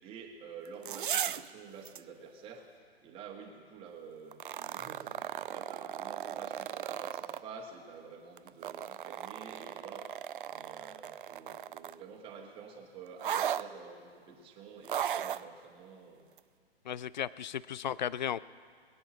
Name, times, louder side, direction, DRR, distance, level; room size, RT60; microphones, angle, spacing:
voice 1, 0.0-2.6 3.0-10.1 10.5-16.3, right 5 dB, 15° right, 2 dB, 1.5 m, -49 dB
sound 1, 0.7-1.5 1.9-2.0 4.3-7.4 8.4-12.0 13.2-13.7 14.8-15.4 16.4-16.5, right 9 dB, 55° right, 0.5 m, -36 dB
voice 2, 16.9-18.4, left 9 dB, 45° left, 20 dB, 0.4 m, -35 dB
22.5 x 9.4 x 6.2 m, 2.1 s
figure-of-eight pair, 125°, 32 cm